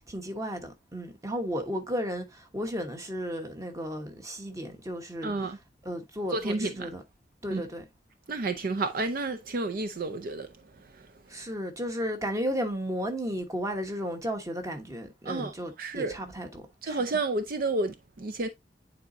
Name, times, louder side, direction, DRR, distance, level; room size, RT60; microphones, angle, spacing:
voice 1, 0.1-5.5 5.8-7.0 7.4-7.8 11.3-17.0, equal, 20° right, 1.2 m, -34 dB
voice 2, 5.2-5.6 6.3-6.9 7.5-7.6 8.3-10.5 15.3-15.5 15.8-16.2 16.8-18.5, right 3 dB, 55° right, 0.5 m, -30 dB
9.4 x 4.1 x 2.6 m
head